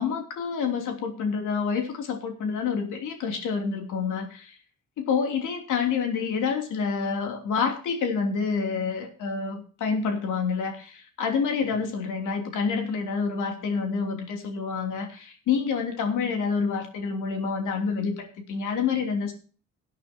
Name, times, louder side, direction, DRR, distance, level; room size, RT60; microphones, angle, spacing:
voice 1, 0.0-4.5 5.0-19.3, left 5 dB, 85° left, 4 dB, 3.1 m, -28 dB
17.5 x 9.1 x 2.9 m, 0.38 s
cardioid pair, 90°, 30 cm